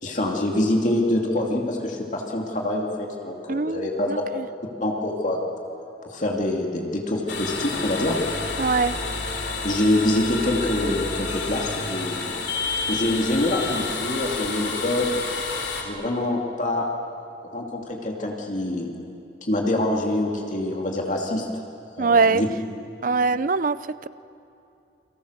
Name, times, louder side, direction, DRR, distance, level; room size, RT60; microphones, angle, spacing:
voice 1, 0.0-4.2 4.8-5.4 6.0-8.2 9.6-12.4 12.9-15.2 15.8-16.9 17.4-18.9 19.5-21.5 22.0-22.5, left 1 dB, 45° left, 0 dB, 2.6 m, -25 dB
voice 2, 3.5-4.5 8.6-9.0 22.0-22.4 23.0-24.1, right 4 dB, 45° right, 16 dB, 0.6 m, -22 dB
sound 1, 7.3-15.8, left 4 dB, 75° left, 3.5 m, -29 dB
29.5 x 24.0 x 6.6 m, 2.7 s
head